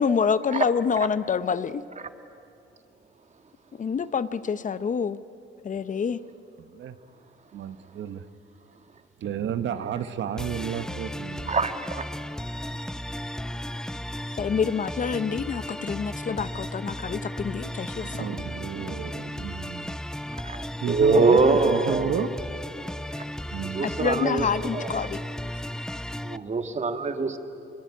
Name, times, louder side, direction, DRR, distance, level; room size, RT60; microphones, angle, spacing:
voice 1, 0.0-1.8 3.8-5.2 5.6-6.2 14.4-18.3 24.0-25.2, left 6 dB, 40° left, 14 dB, 0.7 m, -27 dB
voice 2, 6.6-7.0 7.5-8.2 9.2-11.7 17.9-20.0 20.8-22.3 23.5-23.8, right 9 dB, 70° right, 11 dB, 1.1 m, -32 dB
sound 1, 10.4-26.4, left 1 dB, 5° left, 0.6 m, -35 dB
voice 3, 11.5-12.0 20.4-22.1 22.8-22.9 23.7-24.9 26.2-27.4, right 3 dB, 35° right, 8 dB, 1.8 m, -24 dB
24.5 x 22.5 x 9.3 m, 2.7 s
cardioid pair, 90°, 20 cm